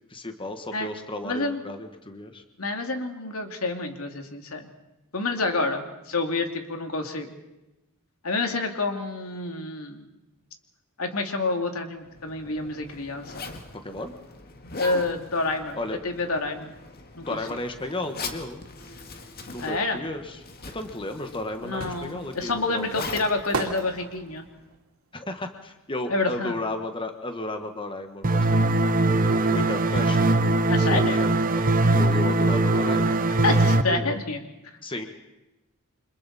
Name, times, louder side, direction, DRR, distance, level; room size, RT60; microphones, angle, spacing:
voice 1, 0.1-2.4 13.8-14.1 15.8-16.0 17.2-18.6 19.5-20.4 20.7-23.2 25.1-28.8 29.5-31.6 31.9-34.2 34.8-35.0, left 2 dB, 25° left, 6 dB, 1.5 m, -34 dB
voice 2, 1.2-1.6 2.6-4.7 5.1-7.3 8.2-10.0 11.0-13.5 14.7-15.8 16.0-16.7 17.2-17.3 19.6-20.0 21.6-24.5 26.1-26.6 30.7-31.3 33.4-34.4, left 3 dB, 85° left, 4 dB, 2.6 m, -28 dB
Zipper (clothing), 12.0-24.7, left 4 dB, 45° left, 2.1 m, -42 dB
sound 1, 21.8-26.8 27.0-28.6 28.9-29.0, right 3 dB, 85° right, 2.9 m, -36 dB
sound 2, 28.2-33.8, right 2 dB, 40° right, 1.0 m, -21 dB
29.0 x 25.5 x 4.3 m, 0.98 s
head